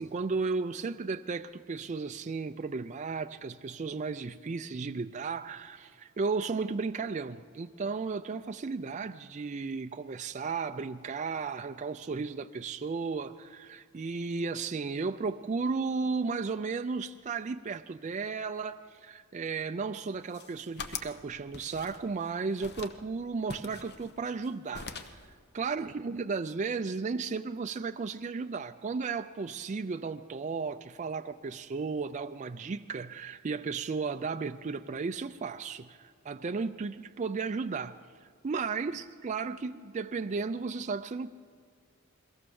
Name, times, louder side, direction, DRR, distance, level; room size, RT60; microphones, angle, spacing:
voice 1, 0.0-25.2 25.5-38.0 38.4-41.3, right 4 dB, 35° right, 8 dB, 0.4 m, -34 dB
sound 1, 20.1-21.2 21.5-22.3 22.6-23.0 23.5-24.5 24.7-25.3, left 5 dB, 50° left, 1.1 m, -42 dB
22.5 x 17.5 x 7.0 m, 2.1 s
head